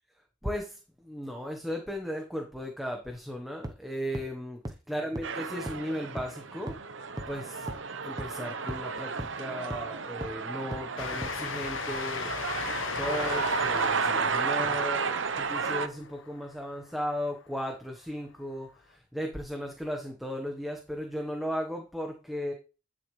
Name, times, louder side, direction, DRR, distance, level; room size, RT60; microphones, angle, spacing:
voice 1, 0.4-6.8 7.3-7.7 8.0-12.4 12.9-22.5, equal, ahead, 2 dB, 1.2 m, -36 dB
sound 1, 3.6-3.7 4.1-4.2 4.6-4.7 5.1-5.2 5.7-5.8 6.2-6.3 6.7-6.8 7.2-7.3 7.7-7.8 8.2-8.3 8.7-8.8 9.2-9.3 9.7-9.8 10.2-10.3 10.7-10.8 11.2-11.3, right 1 dB, 20° right, 1.0 m, -36 dB
sound 2, 5.2-15.9, right 5 dB, 70° right, 0.9 m, -32 dB
Train, 11.0-17.1, left 5 dB, 80° left, 0.9 m, -37 dB
11.0 x 6.2 x 3.3 m, 0.32 s
head